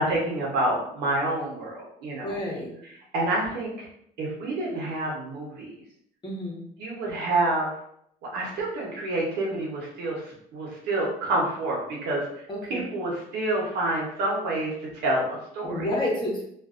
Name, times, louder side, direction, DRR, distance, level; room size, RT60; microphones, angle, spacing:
voice 1, 0.0-2.3 3.1-3.9 4.2-5.7 6.8-7.7 8.3-10.2 10.5-12.2 12.7-14.7 15.0-15.9, right 2 dB, 80° right, -3 dB, 1.1 m, -28 dB
voice 2, 2.2-2.7 6.2-6.6 12.5-12.8 15.6-16.4, left 1 dB, 30° left, -4 dB, 1.1 m, -29 dB
2.6 x 2.5 x 2.4 m, 0.70 s
cardioid pair, 110°, 17 cm